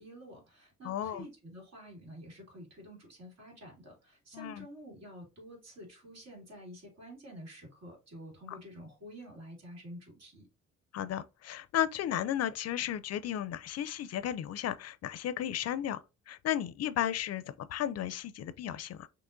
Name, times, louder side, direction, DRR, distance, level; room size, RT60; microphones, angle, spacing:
voice 1, 0.0-10.5, equal, 55° right, 2.5 m, -49 dB
voice 2, 0.8-1.3 4.3-4.7 10.9-16.0 16.3-19.1, left 11 dB, 55° left, 0.4 m, -34 dB
5.8 x 2.9 x 2.5 m
cardioid pair, 90°, 30 cm